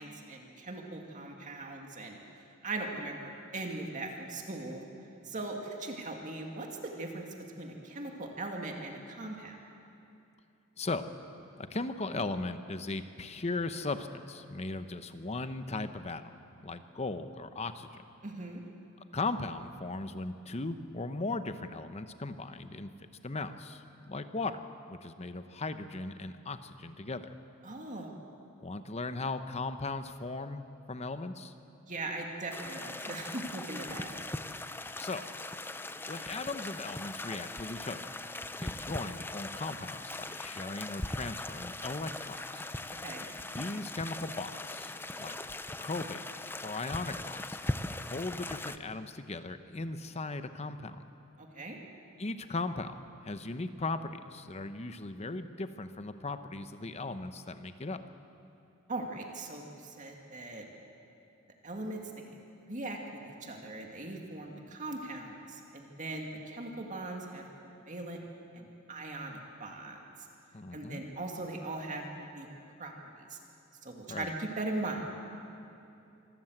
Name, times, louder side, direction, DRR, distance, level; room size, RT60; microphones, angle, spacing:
voice 1, 0.0-2.2 2.6-4.8 5.2-7.3 7.6-9.6 18.2-18.6 27.6-28.2 31.9-34.1 43.0-43.3 51.4-51.8 58.9-60.6 61.6-62.3 62.7-67.4 67.9-68.2 68.5-70.3 70.7-72.5 72.8-72.9 73.2-73.4 73.8-75.3, right 2 dB, 40° right, 1 dB, 2.2 m, -40 dB
voice 2, 11.6-17.9 19.1-24.6 24.9-27.3 28.6-31.5 35.0-35.2 36.1-38.1 38.6-42.6 43.5-44.9 45.2-45.4 45.8-46.3 46.6-47.4 48.1-51.0 52.2-52.9 53.2-58.0 70.5-71.0 74.1-74.3, left 3 dB, 30° left, 10 dB, 0.9 m, -38 dB
sound 1, 32.5-48.8, left 2 dB, 10° left, 0.5 m, -40 dB
25.5 x 13.5 x 7.9 m, 2.7 s
head